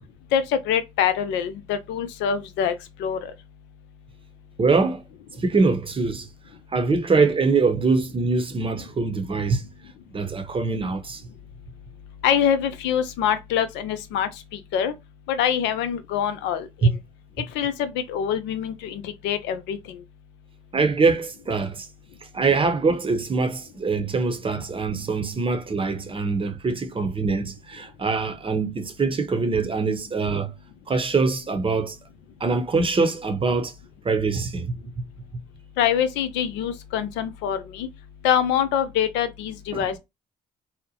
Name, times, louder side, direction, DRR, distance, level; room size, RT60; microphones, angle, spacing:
voice 1, 0.3-2.7 3.0-3.3 12.2-14.9 15.3-17.0 17.5-20.0 35.8-37.9 38.2-40.0, left 9 dB, 70° left, 0.5 m, -25 dB
voice 2, 4.6-5.0 5.3-6.3 6.7-9.6 10.1-11.2 16.8-16.9 20.7-21.9 22.3-30.5 30.9-32.0 32.4-33.7 34.0-34.7 39.7-39.9, right 4 dB, 30° right, 0.7 m, -23 dB
2.8 x 2.0 x 2.7 m
hypercardioid pair, 50°, 19 cm